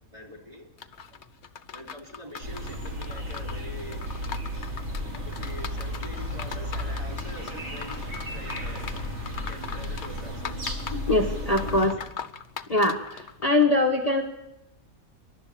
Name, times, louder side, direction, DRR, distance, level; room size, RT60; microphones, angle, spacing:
voice 1, 0.1-0.7 1.7-4.1 4.9-5.0 5.2-8.0 8.3-8.9 9.2-10.5 11.6-12.1, equal, 20° right, 0 dB, 3.4 m, -44 dB
sound 1, 0.8-13.6, left 7 dB, 55° left, 1.2 m, -40 dB
sound 2, 2.4-11.9, left 1 dB, 50° right, 3.7 m, -34 dB
voice 2, 10.9-12.0 12.7-14.2, left 2 dB, 30° left, 1 dB, 1.3 m, -23 dB
26.0 x 12.0 x 8.4 m, 0.94 s
omnidirectional pair, 1.4 m